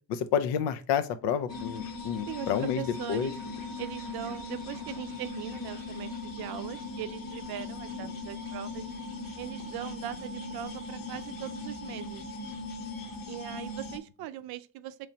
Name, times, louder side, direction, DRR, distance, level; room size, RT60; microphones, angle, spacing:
voice 1, 0.1-2.8 3.1-3.3, left 8 dB, 80° left, 0.6 m, -29 dB
sound 1, 1.5-14.0, left 3 dB, 55° left, 1.1 m, -39 dB
voice 2, 2.3-3.3 3.8-8.8 9.4-12.2 13.3-15.1, right 12 dB, 65° right, 0.5 m, -40 dB
3.9 x 3.2 x 2.7 m
supercardioid pair, 75°, 40 cm